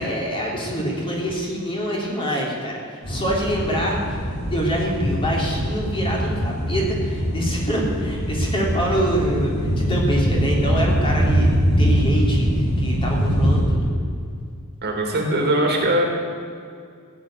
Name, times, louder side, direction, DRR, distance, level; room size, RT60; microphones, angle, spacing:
voice 1, 0.0-13.9, equal, 25° left, -3 dB, 3.4 m, -25 dB
sound 1, 3.0-13.7, equal, 50° left, 3.1 m, -22 dB
voice 2, 14.8-16.1, right 1 dB, 50° right, 1 dB, 2.5 m, -20 dB
16.0 x 8.4 x 9.1 m, 2.2 s
head